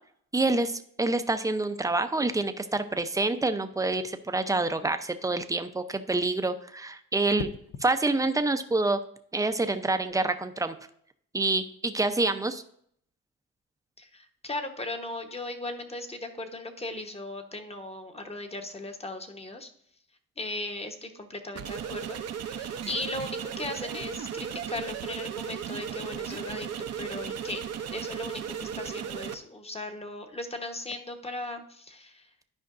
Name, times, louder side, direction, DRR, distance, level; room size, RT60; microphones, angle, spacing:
voice 1, 0.3-7.5 7.8-9.0 9.3-10.7 11.3-12.6, right 2 dB, 10° right, 9 dB, 0.6 m, -27 dB
sound 1, 7.4-7.9 9.9-10.2, left 6 dB, 55° left, 0.7 m, -40 dB
voice 2, 14.0-19.7 20.4-26.7 27.0-27.6 27.9-32.3, left 2 dB, 20° left, 6 dB, 1.1 m, -37 dB
sound 2, 21.5-29.3, right 8 dB, 55° right, 0.7 m, -36 dB
12.0 x 5.1 x 2.6 m, 0.65 s
cardioid pair, 90°, 30 cm